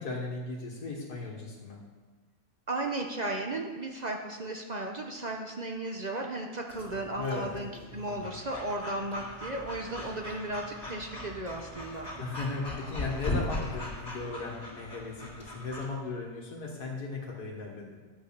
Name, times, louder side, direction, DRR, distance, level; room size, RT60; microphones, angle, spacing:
voice 1, 0.0-1.8 7.2-7.5 7.9-8.3 12.2-17.9, left 3 dB, 80° left, -2 dB, 1.9 m, -37 dB
voice 2, 2.7-12.1 13.4-13.5, right 2 dB, 40° right, 2 dB, 0.6 m, -35 dB
Breathing / Dog, 6.7-15.8, left 1 dB, 40° left, 2.5 m, -39 dB
11.0 x 5.4 x 6.7 m, 1.3 s
omnidirectional pair, 1.7 m